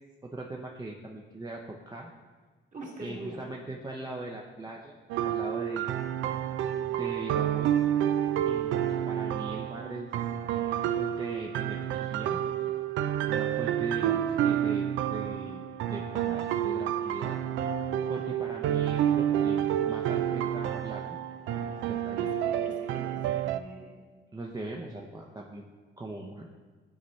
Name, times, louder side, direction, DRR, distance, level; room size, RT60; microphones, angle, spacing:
voice 1, 0.2-2.1 3.0-5.0 5.2-5.9 6.9-7.7 8.4-10.1 10.6-12.4 13.3-15.6 15.9-17.4 18.1-21.2 21.6-22.3 24.3-25.7 26.0-26.5, right 2 dB, 20° right, -1 dB, 0.7 m, -40 dB
voice 2, 2.7-3.4 22.2-23.9, right 1 dB, 40° right, -3 dB, 2.2 m, -44 dB
sound 1, 5.1-23.6, right 10 dB, 80° right, 0.4 m, -29 dB
11.0 x 4.3 x 3.2 m, 1.4 s
cardioid pair, 90°, 20 cm